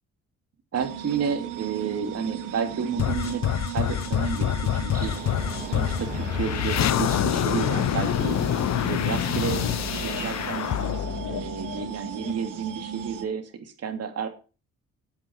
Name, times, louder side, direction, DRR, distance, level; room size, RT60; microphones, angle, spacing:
voice 1, 0.7-5.1 5.7-8.4 8.9-9.7 10.0-10.7 11.3-14.3, right 6 dB, 55° right, 6 dB, 2.7 m, -31 dB
sound 1, 0.7-13.2, right 9 dB, 90° right, 1.6 m, -37 dB
sound 2, 3.0-12.3, left 11 dB, 60° left, 1.0 m, -26 dB
sound 3, 4.9-10.3, right 3 dB, 30° right, 3.0 m, -39 dB
8.9 x 8.2 x 5.7 m, 0.34 s
cardioid pair, 90°, 30 cm